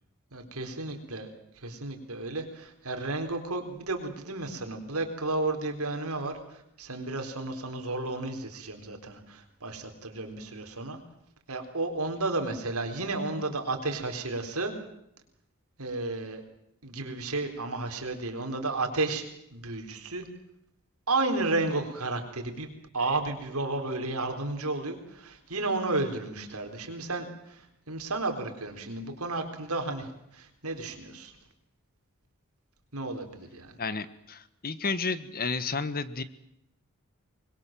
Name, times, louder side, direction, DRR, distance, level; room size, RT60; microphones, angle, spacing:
voice 1, 0.3-1.3 1.6-11.0 11.5-14.7 15.8-16.4 16.8-19.2 19.5-20.3 21.1-31.3 32.9-33.8, right 2 dB, 80° right, 5 dB, 4.1 m, -32 dB
voice 2, 33.8-36.2, left 4 dB, 45° left, 14 dB, 1.3 m, -32 dB
25.0 x 21.5 x 7.6 m, 0.80 s
head